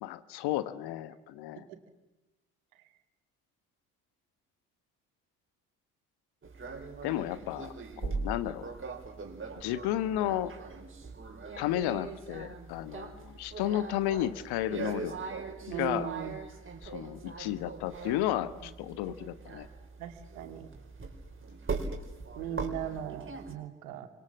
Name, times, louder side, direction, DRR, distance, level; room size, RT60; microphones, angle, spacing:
voice 1, 0.0-1.7 7.0-7.7 8.0-8.6 9.6-10.5 11.6-15.1 15.8-16.1 16.8-19.7, left 13 dB, 60° left, 14 dB, 1.4 m, -32 dB
sound 1, 6.4-23.5, right 4 dB, 30° right, 4.3 m, -41 dB
voice 2, 15.7-16.4 20.0-20.7 22.3-24.1, right 9 dB, 70° right, 8 dB, 2.3 m, -38 dB
29.5 x 25.5 x 7.5 m, 1.0 s
figure-of-eight pair, 45°, 43 cm